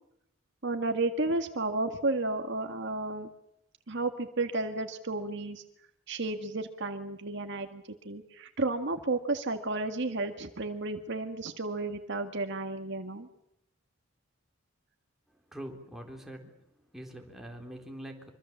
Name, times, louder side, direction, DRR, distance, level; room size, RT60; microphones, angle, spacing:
voice 1, 0.6-3.3 3.9-5.6 6.1-13.3, right 2 dB, 60° right, 6 dB, 1.9 m, -32 dB
voice 2, 15.5-16.6 16.9-18.3, right 1 dB, ahead, 1 dB, 3.9 m, -43 dB
25.0 x 25.0 x 7.4 m, 0.76 s
head